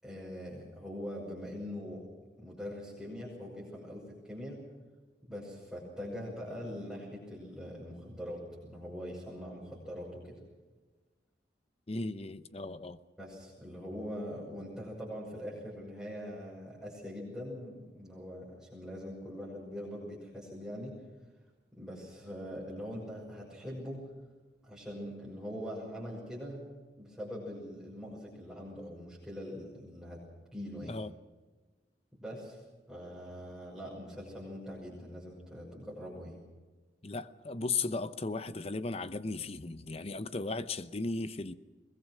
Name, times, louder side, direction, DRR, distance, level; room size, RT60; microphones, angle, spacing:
voice 1, 0.0-2.1 2.4-4.6 5.3-10.4 13.2-21.0 21.7-24.1 24.6-26.6 27.0-30.2 30.5-31.0 32.1-32.6 32.9-36.4, equal, ahead, -8 dB, 6.0 m, -42 dB
voice 2, 11.9-13.0 30.8-31.1 37.0-41.5, left 3 dB, 35° left, 13 dB, 0.8 m, -36 dB
22.5 x 21.0 x 6.3 m, 1.3 s
head